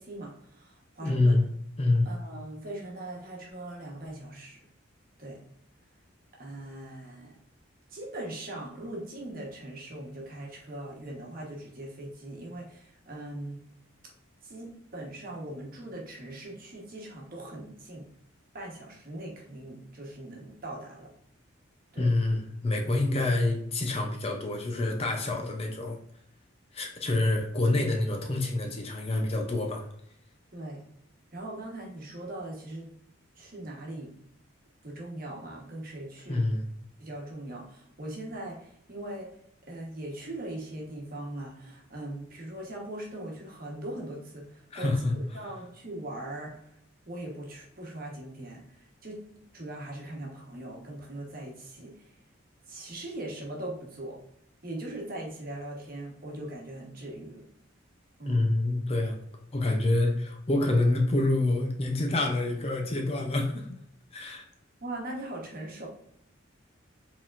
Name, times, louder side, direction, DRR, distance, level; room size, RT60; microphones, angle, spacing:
voice 1, 0.0-1.4 2.0-4.6 5.2-5.4 6.3-7.4 7.9-13.6 14.4-18.1 18.5-21.1 21.9-22.1 30.5-30.8 31.3-32.9 33.4-34.1 34.8-36.5 37.0-39.3 39.6-46.7 47.1-52.2 52.7-54.2 54.6-57.4 58.2-58.5 64.8-65.9, right 1 dB, 45° right, -1 dB, 1.2 m, -40 dB
voice 2, 1.0-1.5 1.8-2.1 22.0-26.0 26.7-29.9 36.3-36.6 44.7-45.1 58.2-59.2 59.5-63.8 64.1-64.4, left 2 dB, 30° left, 2 dB, 0.5 m, -27 dB
4.8 x 3.6 x 2.5 m, 0.71 s
head